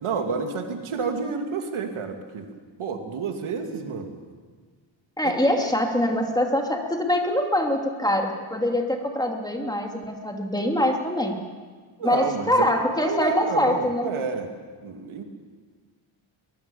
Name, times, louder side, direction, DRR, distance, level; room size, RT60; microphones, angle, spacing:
voice 1, 0.0-2.5 2.8-4.2 5.2-5.3 12.0-14.5 14.8-15.2, right 5 dB, 75° right, 4 dB, 2.8 m, -29 dB
voice 2, 5.2-11.4 12.0-14.1, left 1 dB, 10° left, 2 dB, 2.7 m, -24 dB
23.5 x 21.5 x 7.1 m, 1.5 s
wide cardioid pair, 130°, 50 cm